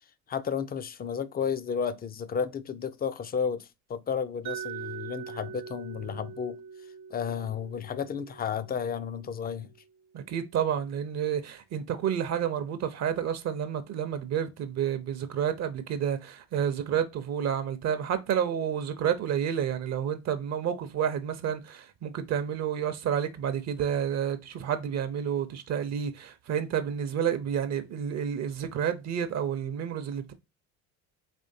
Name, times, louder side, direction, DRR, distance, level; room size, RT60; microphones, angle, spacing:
voice 1, 0.3-6.6 7.1-9.7, left 7 dB, 30° left, 0.4 m, -32 dB
Mallet percussion, 4.4-10.3, right 7 dB, 75° right, 0.9 m, -43 dB
voice 2, 10.1-30.3, right 8 dB, 55° right, 0.6 m, -30 dB
4.2 x 3.1 x 2.6 m
cardioid pair, 95°, 33 cm